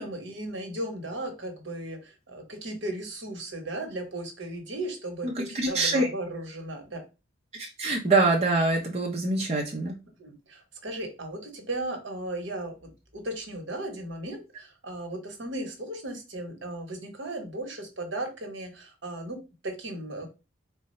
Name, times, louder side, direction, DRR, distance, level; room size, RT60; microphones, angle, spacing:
voice 1, 0.0-7.0 10.2-20.3, right 1 dB, 65° right, 4 dB, 1.0 m, -36 dB
voice 2, 5.2-6.1 7.5-9.9, right 2 dB, 30° right, -1 dB, 0.5 m, -25 dB
3.8 x 2.2 x 4.1 m, 0.29 s
head